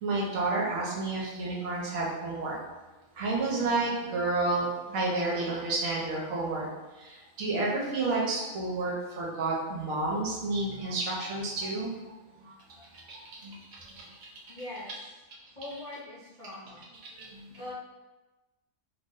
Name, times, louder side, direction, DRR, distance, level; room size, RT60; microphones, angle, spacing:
voice 1, 0.0-2.6 3.2-4.7 4.9-6.7 7.0-11.9 13.1-13.5 17.3-17.4, right 2 dB, 75° right, -4 dB, 1.1 m, -30 dB
voice 2, 14.5-14.9 15.6-16.9 17.6-17.7, left 1 dB, 40° left, -10 dB, 0.7 m, -42 dB
2.6 x 2.1 x 3.5 m, 1.1 s
omnidirectional pair, 1.5 m